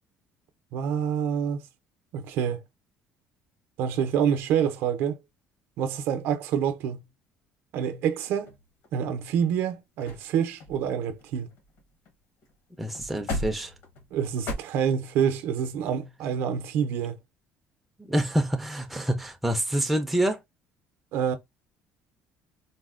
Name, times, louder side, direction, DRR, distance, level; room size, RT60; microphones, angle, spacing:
voice 1, 0.7-1.6 2.1-2.6 3.8-5.2 5.8-7.0 7.7-8.6 8.9-11.5 14.1-17.2 21.1-21.4, right 8 dB, 65° right, 0.5 m, -27 dB
sound 1, 8.3-9.1 9.7-9.8 10.0-10.3 10.6-12.1 12.4-12.5 12.9-14.6, left 1 dB, 65° left, 0.9 m, -37 dB
voice 2, 12.8-13.7 18.1-20.4, right 1 dB, ahead, 0.4 m, -26 dB
4.0 x 2.0 x 2.4 m
cardioid pair, 170°, 4 cm